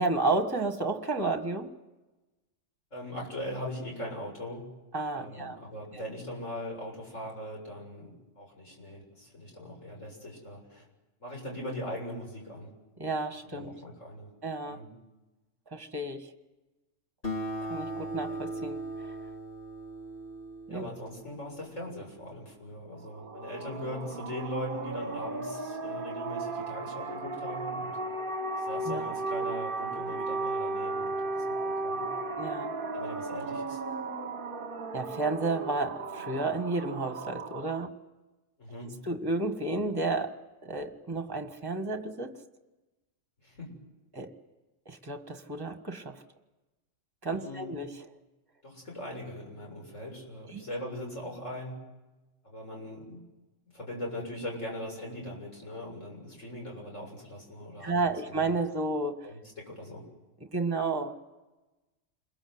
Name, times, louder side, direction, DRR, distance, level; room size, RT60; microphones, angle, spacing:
voice 1, 0.0-1.7 4.9-5.6 5.9-6.0 13.0-13.7 14.4-14.8 15.7-16.3 17.6-19.1 20.7-20.9 28.9-29.0 32.4-32.7 34.9-37.9 39.1-40.4 40.6-42.4 44.1-44.3 44.9-46.2 47.2-48.0 50.5-50.6 57.8-59.3 60.4-61.1, right 3 dB, 20° right, 6 dB, 1.7 m, -31 dB
voice 2, 2.9-4.7 5.1-10.9 11.2-12.7 13.4-14.3 14.7-14.9 20.7-27.9 28.6-32.1 32.9-33.8 38.6-39.0 43.4-43.7 47.3-47.7 48.6-51.8 52.4-53.2 53.7-58.5 59.2-60.0, left 1 dB, 75° left, 0 dB, 7.7 m, -40 dB
Acoustic guitar, 17.2-22.1, right 1 dB, 45° left, 2.6 m, -38 dB
sound 1, 23.1-37.9, right 3 dB, 45° right, 1.3 m, -35 dB
28.5 x 22.0 x 8.0 m, 1.1 s
omnidirectional pair, 1.3 m